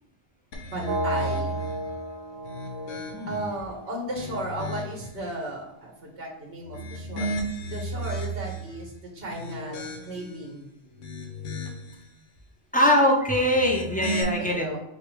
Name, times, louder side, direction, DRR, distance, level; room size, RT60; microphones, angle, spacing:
sound 1, 0.5-1.8 2.4-3.5 4.0-5.1 6.6-8.7 9.2-10.4 10.9-12.0 13.4-14.2, right 1 dB, 80° left, 1.1 m, -34 dB
voice 1, 0.6-1.6 3.3-7.3 7.7-9.8 10.0-10.7 14.4-14.8, right 1 dB, 55° right, -1 dB, 1.4 m, -35 dB
sound 2, 0.8-4.8, equal, 90° right, 0.9 m, -34 dB
voice 2, 3.1-3.4 12.7-14.7, equal, 10° left, -1 dB, 0.4 m, -22 dB
4.8 x 2.1 x 4.6 m, 0.84 s
omnidirectional pair, 1.3 m